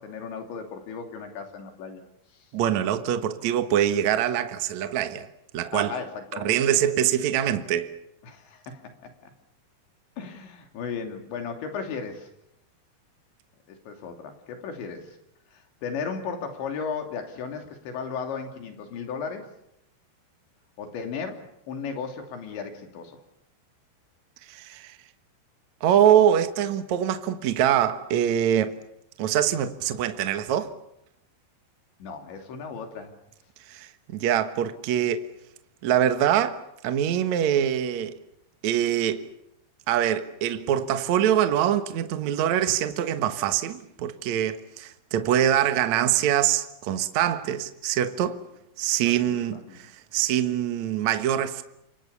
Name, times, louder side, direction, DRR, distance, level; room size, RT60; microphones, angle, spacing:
voice 1, 0.0-2.0 5.7-6.8 8.2-9.3 10.2-12.3 13.7-15.2 15.5-19.5 20.8-23.2 32.0-33.1 49.3-49.9, left 5 dB, 75° left, 5.2 m, -35 dB
voice 2, 2.5-5.3 5.5-5.9 6.4-7.9 24.5-24.9 25.8-28.7 29.2-30.7 33.7-35.2 35.8-38.2 38.6-39.2 39.9-48.4 48.8-51.6, right 10 dB, 65° right, 1.8 m, -24 dB
29.5 x 24.5 x 7.0 m
omnidirectional pair, 5.3 m